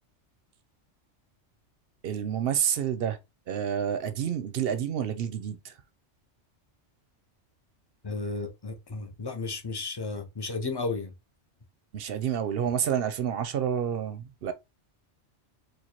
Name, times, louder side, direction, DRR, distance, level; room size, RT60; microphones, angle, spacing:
voice 1, 2.0-3.2 3.5-5.8 11.9-14.5, right 8 dB, 65° right, 0.7 m, -29 dB
voice 2, 8.0-11.1, left 3 dB, 35° left, 0.4 m, -33 dB
4.5 x 2.3 x 2.9 m
omnidirectional pair, 1.2 m